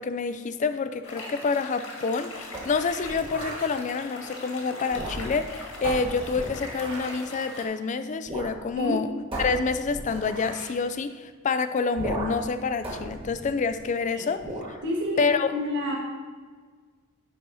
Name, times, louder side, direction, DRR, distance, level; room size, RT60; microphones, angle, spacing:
voice 1, 0.0-9.1 9.4-14.8 15.2-15.5, left 4 dB, 35° left, 10 dB, 0.3 m, -28 dB
sound 1, 1.0-7.6, left 2 dB, 65° left, 1.5 m, -40 dB
sound 2, 2.5-3.7 4.8-5.5 5.8-7.2 8.3-8.6 8.8-8.9 9.3-10.8 11.9-12.5 12.8-14.0 14.4-14.8, right 1 dB, 25° right, 1.7 m, -35 dB
voice 2, 14.8-15.9, left 1 dB, 55° right, -3 dB, 1.6 m, -29 dB
10.0 x 4.0 x 4.1 m, 1.5 s
head